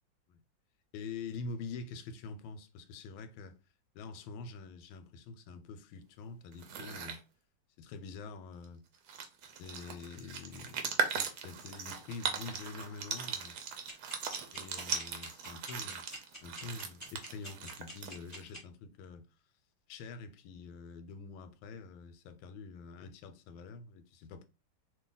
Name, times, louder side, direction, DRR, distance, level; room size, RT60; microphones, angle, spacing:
voice 1, 0.9-3.6 3.9-7.2 7.8-8.8 9.6-13.6 14.5-19.3 19.9-24.5, left 4 dB, 90° left, 1.3 m, -46 dB
sound 1, 6.5-7.2 8.6-8.7 8.9-18.5, right 6 dB, 65° right, 1.0 m, -39 dB
sound 2, 13.9-18.6, equal, 10° left, 0.9 m, -45 dB
2.9 x 2.6 x 3.8 m
omnidirectional pair, 2.0 m